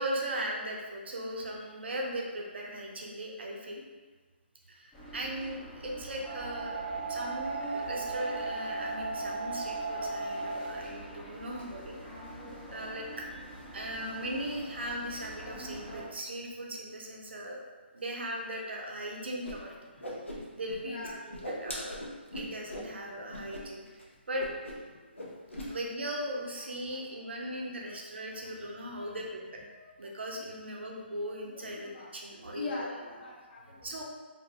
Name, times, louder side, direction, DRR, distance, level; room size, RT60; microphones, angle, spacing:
voice 1, 0.0-3.8 4.7-6.8 7.1-12.0 12.7-13.4 13.7-17.6 17.9-20.2 20.5-22.0 22.3-23.8 24.3-24.5 25.7-29.4 30.0-32.9 33.8-34.0, right 1 dB, 65° right, -1 dB, 0.5 m, -38 dB
sound 1, 4.9-16.0, right 3 dB, 10° left, 0.5 m, -38 dB
Whoosh swoosh swish, 19.4-19.5 19.8-20.7 21.0-22.9 23.3-23.6 23.9-24.0 24.4-24.9 25.1-25.7, equal, 90° left, 0.6 m, -40 dB
voice 2, 20.8-21.1 22.9-23.3 25.0-25.4 25.6-25.7 29.0-29.1 29.8-30.1 31.5-32.1 32.5-34.0, left 2 dB, 60° left, -4 dB, 0.8 m, -43 dB
2.6 x 2.2 x 2.6 m, 1.4 s
figure-of-eight pair, 145°, 6 cm